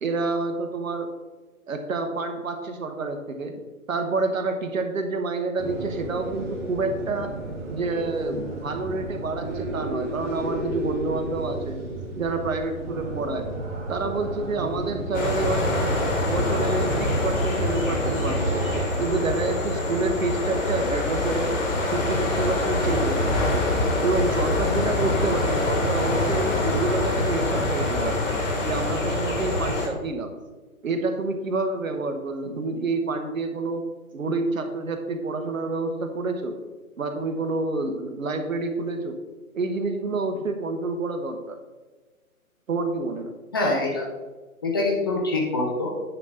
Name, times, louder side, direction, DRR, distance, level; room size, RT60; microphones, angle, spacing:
voice 1, 0.0-1.1 1.7-3.6 3.9-7.3 7.7-11.8 12.2-13.5 13.9-15.9 16.3-18.6 19.0-21.5 21.9-23.6 24.0-28.2 28.6-30.3 30.8-33.8 34.1-36.6 37.0-39.2 39.5-41.6 42.7-43.3, right 3 dB, 65° right, 6 dB, 1.3 m, -28 dB
sound 1, 5.6-18.8, right 2 dB, 40° right, 2.3 m, -33 dB
sound 2, 15.1-29.9, left 1 dB, 60° left, 2.6 m, -25 dB
voice 2, 43.5-44.1 44.6-46.0, left 2 dB, 15° left, -2 dB, 0.6 m, -24 dB
9.6 x 3.8 x 5.6 m, 1.3 s
figure-of-eight pair, 140°, 44 cm